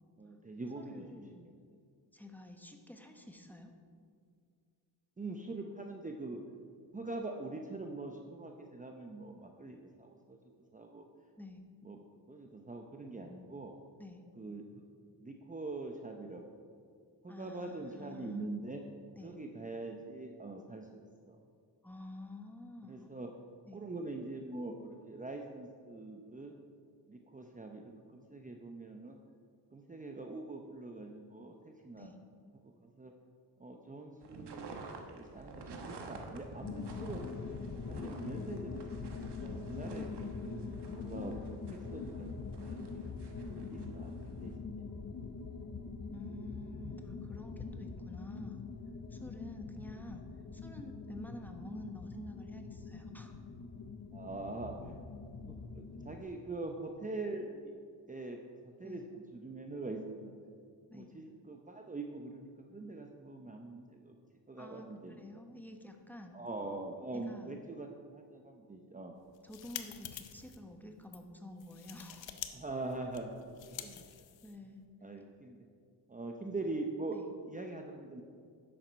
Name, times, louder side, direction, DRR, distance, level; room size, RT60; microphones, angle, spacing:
voice 1, 0.2-1.0 1.3-1.5 5.2-6.4 6.9-10.4 10.7-11.1 11.8-12.0 12.3-13.8 14.4-14.8 15.2-16.5 17.2-18.8 19.2-21.4 22.9-23.3 23.7-26.5 27.1-29.2 29.7-31.5 31.8-32.1 32.6-32.7 33.0-33.1 33.6-37.3 37.9-40.1 40.9-42.3 42.6-42.9 43.5-44.1 44.4-44.8 54.1-55.0 55.4-57.7 58.1-58.4 58.8-59.0 59.3-60.3 60.9-64.1 64.5-65.2 66.3-69.1 72.5-73.5 73.8-74.2 75.0-75.6 76.1-77.2 77.4-78.2, right 2 dB, 20° right, 2 dB, 0.7 m, -43 dB
voice 2, 0.7-1.4 2.1-3.7 11.4-11.7 14.0-14.3 17.3-18.5 19.2-19.3 21.8-23.1 23.7-23.8 31.9-32.2 39.8-40.8 46.1-48.6 49.1-50.2 50.5-53.3 58.8-59.0 60.9-61.1 64.6-66.4 67.1-67.6 69.4-72.3 74.4-74.9 77.1-77.3, left 1 dB, 5° left, 3 dB, 1.1 m, -49 dB
sound 1, 34.2-44.6, right 3 dB, 70° right, 1.3 m, -51 dB
sound 2, 36.6-56.2, left 4 dB, 40° left, 0.7 m, -43 dB
sound 3, 69.2-70.6 71.0-71.2 71.6-72.5 72.8-74.7, left 10 dB, 90° left, 0.8 m, -47 dB
10.5 x 7.7 x 5.2 m, 2.3 s
cardioid pair, 95°, 43 cm